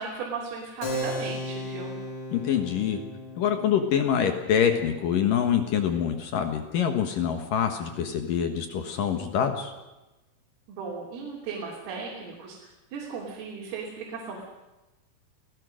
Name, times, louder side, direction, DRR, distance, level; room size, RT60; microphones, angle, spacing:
voice 1, 0.0-2.0 10.7-14.5, right 5 dB, 85° right, -3 dB, 5.7 m, -36 dB
Keyboard (musical), 0.8-6.9, equal, 90° left, 6.8 m, -37 dB
voice 2, 2.3-3.0 3.4-9.7, left 8 dB, 70° left, 7 dB, 2.1 m, -25 dB
28.5 x 18.0 x 6.4 m, 1.1 s
omnidirectional pair, 5.8 m